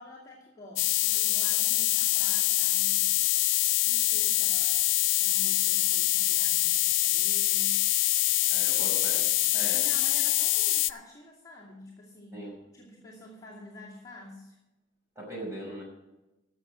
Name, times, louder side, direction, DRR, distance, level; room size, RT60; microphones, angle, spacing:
voice 1, 0.0-3.2 3.8-7.9 9.5-12.4 12.7-14.6, left 1 dB, 20° left, -6 dB, 2.4 m, -48 dB
sound 1, 0.8-10.9, left 16 dB, 80° left, 0.4 m, -25 dB
voice 2, 8.5-9.3 9.5-9.8 12.3-12.6 15.2-15.8, right 1 dB, 15° right, -3 dB, 5.6 m, -39 dB
15.0 x 6.8 x 6.2 m, 0.98 s
head